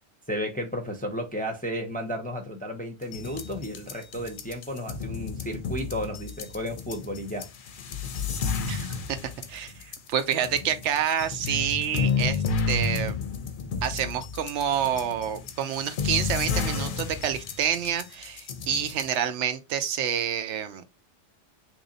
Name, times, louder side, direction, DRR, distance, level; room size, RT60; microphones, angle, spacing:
voice 1, 0.3-7.5, equal, 10° left, 0.4 m, -33 dB
sound 1, 3.0-19.2, left 5 dB, 55° left, 0.6 m, -31 dB
voice 2, 8.7-9.2 9.5-13.1 13.8-20.8, right 9 dB, 85° right, 0.9 m, -28 dB
3.0 x 2.7 x 3.9 m
omnidirectional pair, 1.2 m